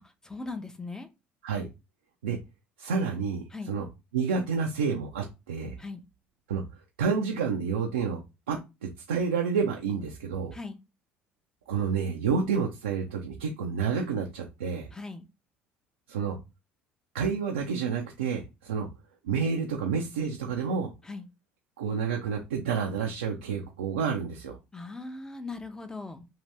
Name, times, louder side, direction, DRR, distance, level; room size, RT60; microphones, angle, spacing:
voice 1, 0.0-1.1 3.5-3.8 5.8-6.0 10.5-10.8 14.9-15.3 21.0-21.3 24.7-26.3, left 3 dB, 10° left, 8 dB, 0.6 m, -39 dB
voice 2, 2.8-3.9 4.1-5.7 6.5-6.6 7.0-10.5 11.7-14.9 16.1-16.4 17.1-18.9 19.2-20.9 21.8-24.6, right 6 dB, 80° right, 1 dB, 0.4 m, -29 dB
2.7 x 2.5 x 3.3 m, 0.25 s
figure-of-eight pair, 60°, 6 cm